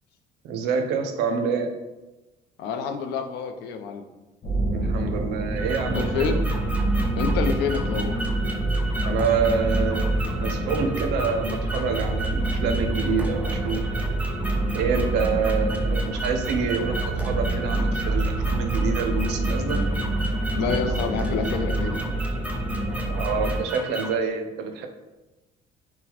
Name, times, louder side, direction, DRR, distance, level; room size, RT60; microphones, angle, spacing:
voice 1, 0.4-1.7 4.7-6.4 9.0-13.8 14.7-19.8 23.0-24.9, right 5 dB, 85° right, 5 dB, 0.5 m, -27 dB
voice 2, 2.6-4.0 5.9-6.4 7.2-8.2 20.5-22.0, left 6 dB, 80° left, 6 dB, 0.4 m, -28 dB
sound 1, 4.4-23.6, right 2 dB, 35° left, 0.6 m, -26 dB
sound 2, 5.6-24.2, right 1 dB, 10° right, 0.4 m, -36 dB
3.9 x 2.1 x 2.8 m, 1.1 s
cardioid pair, 110°, 17 cm